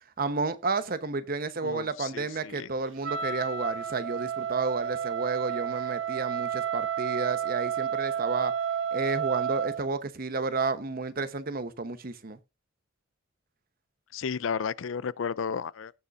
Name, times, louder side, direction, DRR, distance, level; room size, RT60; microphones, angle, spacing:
voice 1, 0.2-8.5 8.9-12.4, right 3 dB, 50° right, 0.9 m, -31 dB
voice 2, 1.6-2.7 14.1-15.9, left 6 dB, 80° left, 0.4 m, -33 dB
Wind instrument woodwind instrument, 3.0-9.8, right 8 dB, 70° right, 0.7 m, -31 dB
18.5 x 6.9 x 2.5 m
head